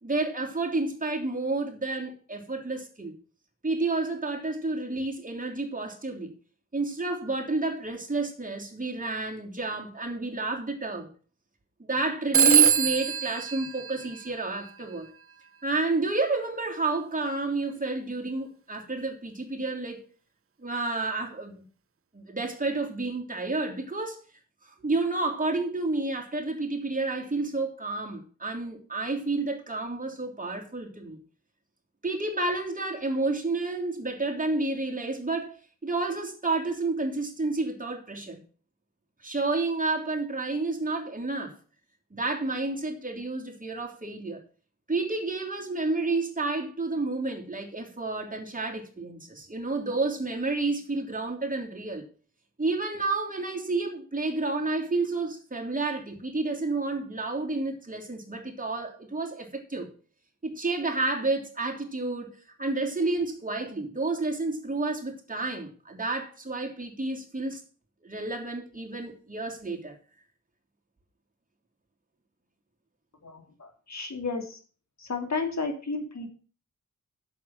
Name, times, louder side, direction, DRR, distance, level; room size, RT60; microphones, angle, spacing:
voice 1, 0.0-3.2 3.6-6.3 6.7-11.1 11.8-15.1 15.6-20.1 20.6-21.6 22.1-24.2 24.6-31.2 32.0-38.4 39.2-41.6 42.1-44.4 44.9-52.0 52.6-59.9 60.4-67.6 68.0-70.0, right 3 dB, 25° right, 3.1 m, -30 dB
Telephone, 12.3-14.8, right 8 dB, 45° right, 0.6 m, -23 dB
voice 2, 73.2-74.6 75.0-76.3, left 4 dB, 60° left, 2.7 m, -33 dB
8.2 x 7.3 x 7.3 m
cardioid pair, 70°, 32 cm